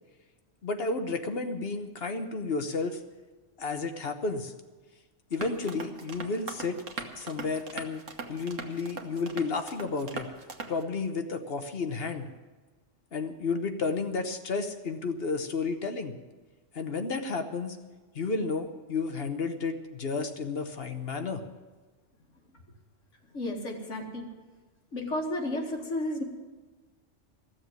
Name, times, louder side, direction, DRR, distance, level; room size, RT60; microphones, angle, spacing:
voice 1, 0.6-3.0 3.6-4.5 5.3-8.0 8.3-10.3 10.7-12.3 13.1-16.2 16.7-17.8 18.1-21.4, left 4 dB, 55° left, 7 dB, 1.2 m, -32 dB
sound 1, 5.3-10.8, right 4 dB, 85° right, 1.6 m, -41 dB
voice 2, 23.3-24.3 24.9-26.2, left 1 dB, 75° left, 1 dB, 2.3 m, -32 dB
15.0 x 7.2 x 9.5 m, 1.3 s
omnidirectional pair, 1.3 m